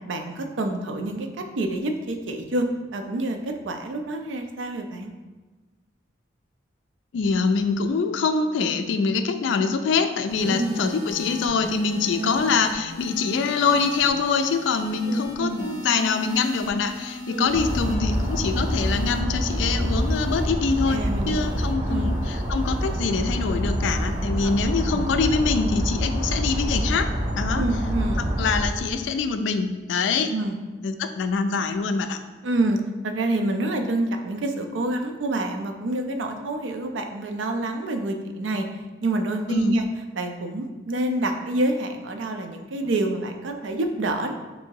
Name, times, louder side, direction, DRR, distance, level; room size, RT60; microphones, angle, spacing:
voice 1, 0.1-2.7 2.9-5.1 10.4-10.9 12.1-12.4 15.0-15.7 17.3-17.6 20.9-21.4 21.9-22.1 24.4-25.0 27.5-28.3 30.3-30.6 32.4-38.7 39.0-39.8 40.2-44.3, right 2 dB, 85° right, 5 dB, 0.5 m, -27 dB
voice 2, 7.1-27.1 27.4-27.6 28.2-30.3 30.8-32.2 39.5-39.7, left 5 dB, 80° left, 8 dB, 0.3 m, -24 dB
sound 1, 10.3-26.8 27.7-28.0, left 1 dB, 45° right, 0.8 m, -40 dB
sound 2, 17.5-28.7, equal, 25° right, 0.5 m, -26 dB
3.7 x 2.6 x 4.6 m, 1.2 s
head